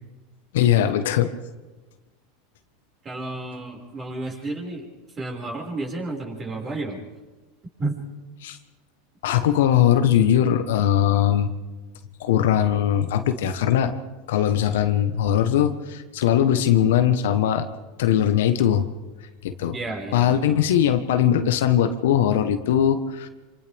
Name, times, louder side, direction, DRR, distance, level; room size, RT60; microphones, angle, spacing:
voice 1, 0.5-1.3 8.4-8.6 9.2-11.5 12.2-13.9 14.3-17.7 18.0-18.9 19.4-19.7 20.1-23.3, left 10 dB, 75° left, 9 dB, 1.3 m, -20 dB
voice 2, 3.0-4.9 5.2-7.0 7.8-8.0 19.7-20.7, right 2 dB, 30° right, 0 dB, 5.8 m, -31 dB
27.0 x 26.5 x 3.6 m, 1.2 s
hypercardioid pair, 105°, 0 cm